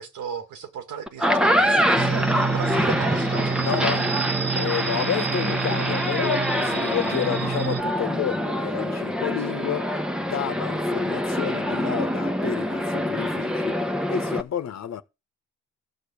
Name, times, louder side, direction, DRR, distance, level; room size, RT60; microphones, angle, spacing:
voice 1, 0.0-4.0, right 7 dB, 75° right, 2.4 m, -36 dB
sound 1, 1.1-14.4, equal, 5° right, 1.2 m, -25 dB
sound 2, 2.0-7.8, right 6 dB, 35° right, 1.1 m, -29 dB
voice 2, 3.6-4.0 4.5-9.9 10.2-13.8 14.1-15.0, left 9 dB, 60° left, 1.4 m, -30 dB
14.5 x 5.0 x 8.7 m
cardioid pair, 90°, 30 cm